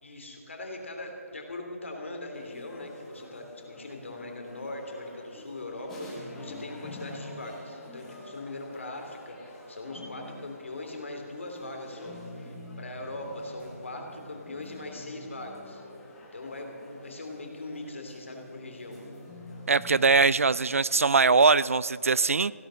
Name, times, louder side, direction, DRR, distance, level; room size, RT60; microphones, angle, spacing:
voice 1, 0.0-15.8 16.3-19.0, left 2 dB, 55° left, 2 dB, 3.0 m, -40 dB
sound 1, 2.3-20.6, left 1 dB, 5° left, 1.0 m, -46 dB
voice 2, 19.7-22.5, right 4 dB, 65° right, 20 dB, 0.4 m, -21 dB
16.0 x 12.0 x 6.4 m, 2.7 s
hypercardioid pair, 180°, 8 cm